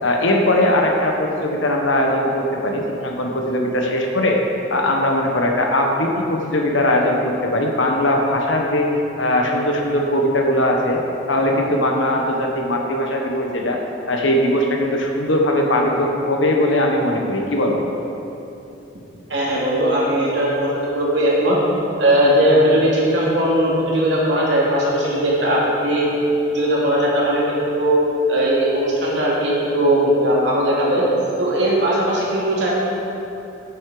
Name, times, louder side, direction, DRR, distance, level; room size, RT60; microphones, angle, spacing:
voice 1, 0.0-4.4 4.7-11.0 11.3-13.8 14.1-17.8, left 1 dB, 80° left, 1 dB, 1.4 m, -20 dB
voice 2, 19.3-21.6 22.0-26.1 26.5-28.0 28.3-31.0 31.4-32.7, right 1 dB, 65° right, -5 dB, 2.7 m, -18 dB
11.0 x 8.5 x 5.0 m, 2.9 s
head